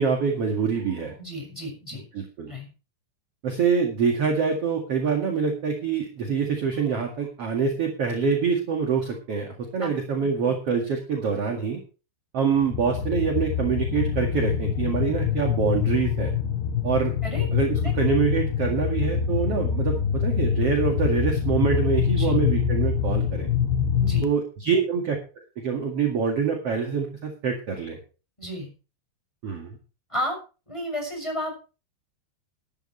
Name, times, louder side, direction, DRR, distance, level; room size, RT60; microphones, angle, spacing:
voice 1, 0.0-1.2 2.1-2.5 3.4-11.8 12.3-16.4 16.8-17.1 17.5-23.5 24.2-25.2 25.6-28.0 29.4-29.8, right 6 dB, 50° right, 2 dB, 1.9 m, -25 dB
voice 2, 1.2-2.0 2.5-2.7 9.8-9.9 17.2-17.5 17.8-17.9 22.1-22.4 24.0-24.3 24.6-24.7 28.4-28.7 30.1-30.4 30.7-31.6, equal, 5° left, 1 dB, 6.1 m, -32 dB
sound 1, 12.6-24.2, left 7 dB, 70° left, 2.6 m, -25 dB
15.5 x 12.5 x 3.2 m, 0.33 s
omnidirectional pair, 5.6 m